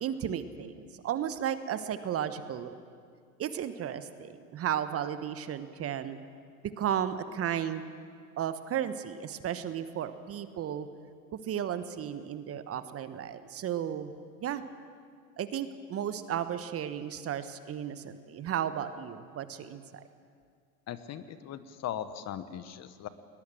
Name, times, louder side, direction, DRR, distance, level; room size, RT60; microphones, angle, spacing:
voice 1, 0.0-2.8 3.4-6.2 6.8-7.9 8.4-10.9 11.4-14.1 14.4-14.6 15.4-20.0, right 9 dB, 30° right, 12 dB, 1.1 m, -34 dB
voice 2, 20.9-23.1, left 10 dB, 35° left, 13 dB, 1.2 m, -39 dB
21.0 x 20.5 x 7.7 m, 2.1 s
hypercardioid pair, 100°, 46 cm